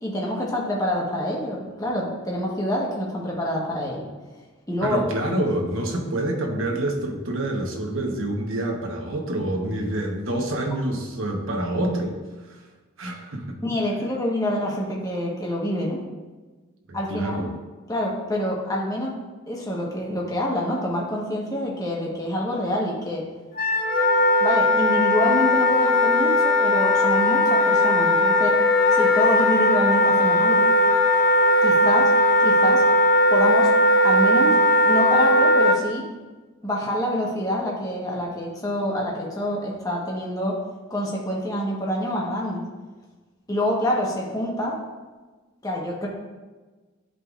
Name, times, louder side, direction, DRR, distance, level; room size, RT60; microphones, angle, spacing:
voice 1, 0.0-4.1 4.7-5.0 13.6-16.0 16.9-17.5 17.9-19.1 19.5-23.3 24.4-28.6 28.9-30.7 31.6-32.1 32.4-32.8 33.3-33.7 34.0-34.6 34.8-36.1 36.6-40.6 40.9-42.6 43.5-44.8 45.6-46.1, equal, 15° left, -3 dB, 1.1 m, -26 dB
voice 2, 4.8-12.2 12.4-12.6 13.0-13.6 16.9-17.5, right 1 dB, 70° right, 1 dB, 1.0 m, -27 dB
Wind instrument woodwind instrument, 23.6-35.8, left 1 dB, 40° left, 0.6 m, -18 dB
Wind instrument woodwind instrument 2, 26.7-30.2, right 3 dB, 50° right, 2.0 m, -31 dB
11.0 x 3.9 x 2.4 m, 1.3 s
head